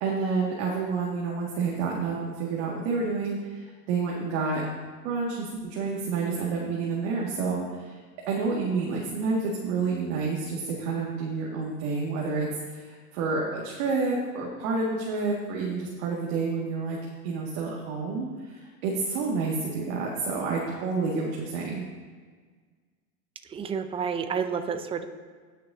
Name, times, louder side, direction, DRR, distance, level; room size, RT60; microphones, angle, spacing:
voice 1, 0.0-4.6 5.0-7.9 8.3-17.0 17.2-21.8, right 4 dB, 55° right, -3 dB, 2.1 m, -29 dB
voice 2, 23.5-25.1, right 6 dB, 15° right, 9 dB, 0.5 m, -30 dB
19.0 x 6.7 x 2.7 m, 1.5 s
hypercardioid pair, 120°, 46 cm